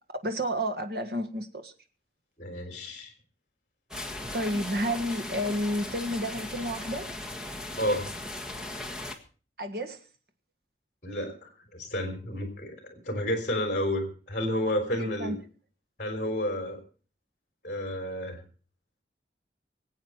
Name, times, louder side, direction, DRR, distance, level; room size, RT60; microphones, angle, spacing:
voice 1, 0.2-1.7 4.3-7.1 9.6-10.0 15.0-15.4, equal, 60° right, 1.6 m, -31 dB
voice 2, 2.4-3.1 7.8-8.1 11.0-15.4 16.0-16.8 17.6-18.4, left 1 dB, 45° left, 3.8 m, -31 dB
sound 1, 3.9-9.2, left 1 dB, 5° right, 1.6 m, -38 dB
24.5 x 8.4 x 4.6 m
head